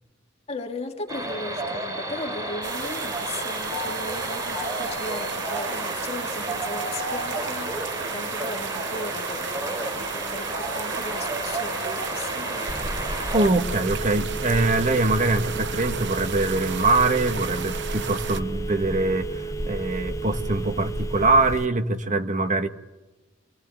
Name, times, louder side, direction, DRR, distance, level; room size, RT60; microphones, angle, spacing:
voice 1, 0.5-12.8, left 2 dB, 35° left, 3.1 m, -37 dB
sound 1, 1.1-13.5, right 1 dB, 20° right, 4.4 m, -31 dB
sound 2, 2.6-18.4, right 7 dB, 65° right, 1.0 m, -34 dB
Telephone, 12.7-21.7, right 1 dB, 15° left, 0.8 m, -32 dB
voice 2, 13.3-22.7, right 2 dB, 40° right, 1.5 m, -23 dB
26.5 x 19.0 x 9.0 m
head